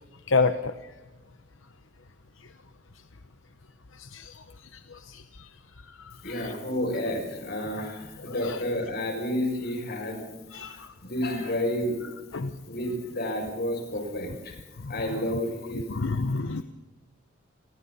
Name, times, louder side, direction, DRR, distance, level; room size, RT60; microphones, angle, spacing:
voice 1, 0.3-0.7 4.0-4.4 4.7-5.5 6.0-6.5 8.4-8.6 10.5-10.9 12.3-12.5 14.8-14.9 15.9-16.6, left 4 dB, 80° left, 10 dB, 1.0 m, -29 dB
voice 2, 6.2-10.3 11.0-12.0 12.7-14.6 14.9-15.9, left 1 dB, 55° left, 3 dB, 6.9 m, -30 dB
29.5 x 23.5 x 4.3 m, 1.1 s
head